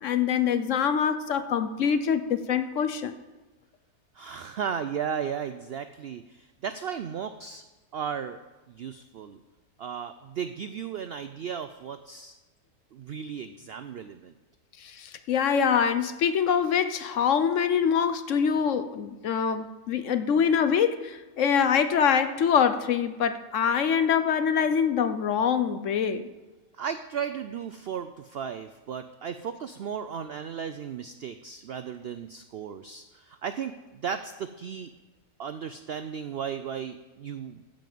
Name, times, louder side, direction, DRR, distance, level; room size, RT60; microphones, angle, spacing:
voice 1, 0.0-3.2 14.8-26.3, left 7 dB, 60° left, 10 dB, 0.9 m, -24 dB
voice 2, 4.1-7.6 7.9-8.4 8.7-9.4 9.8-12.4 12.9-14.3 26.7-34.9 35.4-37.6, right 7 dB, 75° right, 10 dB, 0.5 m, -35 dB
14.0 x 5.4 x 7.7 m, 1.2 s
omnidirectional pair, 1.6 m